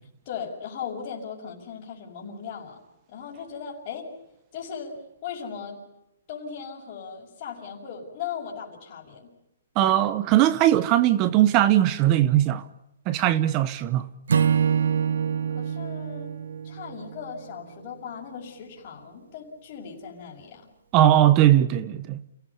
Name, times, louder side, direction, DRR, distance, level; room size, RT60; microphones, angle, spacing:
voice 1, 0.2-2.8 3.1-4.1 4.5-5.8 6.3-9.3 15.5-16.4 16.6-20.7, left 7 dB, 35° left, 6.1 m, -38 dB
voice 2, 9.8-12.7 13.1-14.1 20.9-22.2, right 12 dB, 25° right, 1.0 m, -19 dB
Acoustic guitar / Strum, 14.3-17.6, right 7 dB, 80° right, 1.5 m, -25 dB
29.5 x 18.0 x 7.0 m
hypercardioid pair, 160°, 0 cm